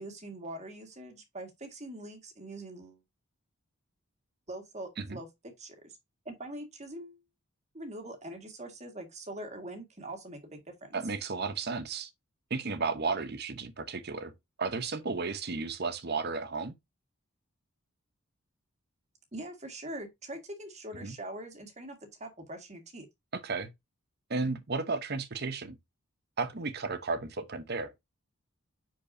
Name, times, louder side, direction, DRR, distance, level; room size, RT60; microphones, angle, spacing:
voice 1, 0.0-3.0 4.5-6.0 6.3-7.2 7.7-11.0 19.3-23.1, right 1 dB, 30° right, 1.8 m, -43 dB
voice 2, 10.9-12.1 12.5-14.3 14.6-16.7 21.0-21.1 23.3-23.7 24.3-25.8 26.4-27.9, right 4 dB, 50° right, 0.9 m, -33 dB
10.0 x 4.6 x 2.7 m
head